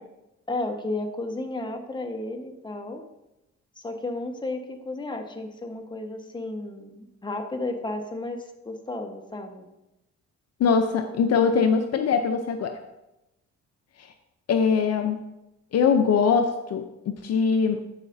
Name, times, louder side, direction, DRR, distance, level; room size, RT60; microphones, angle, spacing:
voice 1, 0.5-3.0 3.8-9.7, left 2 dB, 15° left, 4 dB, 1.2 m, -33 dB
voice 2, 10.6-12.8 14.0-14.1 14.5-15.2 15.7-17.8, left 6 dB, 55° left, 7 dB, 0.6 m, -22 dB
14.5 x 4.9 x 2.7 m, 0.94 s
cardioid pair, 90°, 30 cm